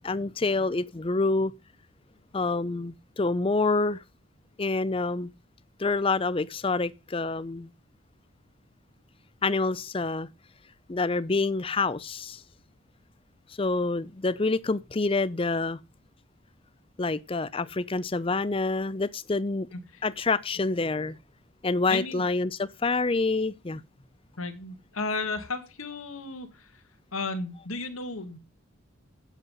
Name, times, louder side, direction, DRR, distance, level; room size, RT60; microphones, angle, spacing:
voice 1, 0.0-1.5 2.3-4.0 4.6-5.3 5.8-7.7 9.4-10.3 10.9-12.4 13.6-15.8 17.0-19.7 20.0-21.2 21.6-23.8, left 3 dB, 25° left, 0.5 m, -27 dB
voice 2, 21.9-22.2 24.4-26.8 27.1-28.4, left 3 dB, 80° left, 1.8 m, -34 dB
9.2 x 8.3 x 5.4 m
head